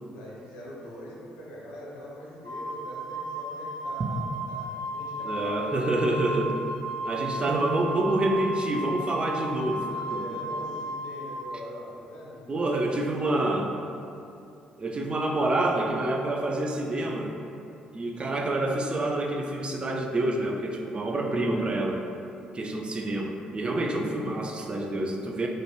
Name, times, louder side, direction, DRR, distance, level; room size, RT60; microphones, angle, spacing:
voice 1, 0.1-6.3 7.4-7.6 10.0-12.8 13.2-13.7, equal, 70° left, -6 dB, 0.6 m, -43 dB
Wind instrument woodwind instrument, 2.4-11.4, right 1 dB, 80° right, 0.6 m, -34 dB
voice 2, 5.2-6.5 7.0-10.2 12.5-13.7 14.8-17.3 17.9-22.0 22.5-25.5, right 1 dB, 30° right, 1 dB, 0.3 m, -27 dB
2.2 x 2.1 x 3.0 m, 2.5 s
hypercardioid pair, 50°, 3 cm